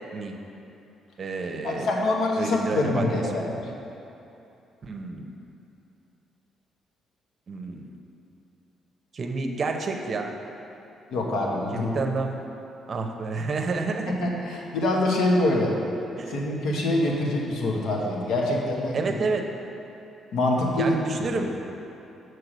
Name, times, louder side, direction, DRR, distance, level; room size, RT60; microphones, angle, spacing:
voice 1, 0.1-0.4 1.2-1.9 2.4-3.5 4.8-5.3 7.5-7.9 9.1-10.3 11.7-12.4 12.9-14.3 16.2-16.4 18.9-19.5 20.8-21.6, right 3 dB, 45° right, 4 dB, 0.7 m, -30 dB
voice 2, 1.6-3.6 11.1-12.0 14.1-15.8 16.3-19.1 20.3-21.0 21.3-21.4, left 1 dB, 80° left, -2 dB, 1.2 m, -25 dB
6.5 x 4.6 x 6.2 m, 2.8 s
cardioid pair, 90°, 0 cm